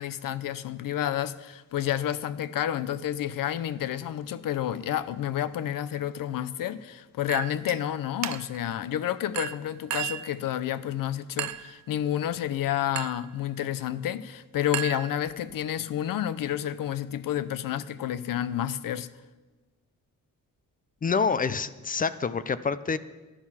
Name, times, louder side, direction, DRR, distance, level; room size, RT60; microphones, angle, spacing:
voice 1, 0.0-19.1, left 11 dB, 80° left, 0.7 m, -30 dB
Chink clink, 7.3-7.8 8.2-8.7 9.4-10.3 11.4-11.8 13.0-13.3 14.7-15.5, right 12 dB, 55° right, 0.5 m, -34 dB
voice 2, 21.0-23.0, left 5 dB, 25° left, 0.4 m, -27 dB
15.5 x 11.5 x 5.7 m
wide cardioid pair, 165°, 33 cm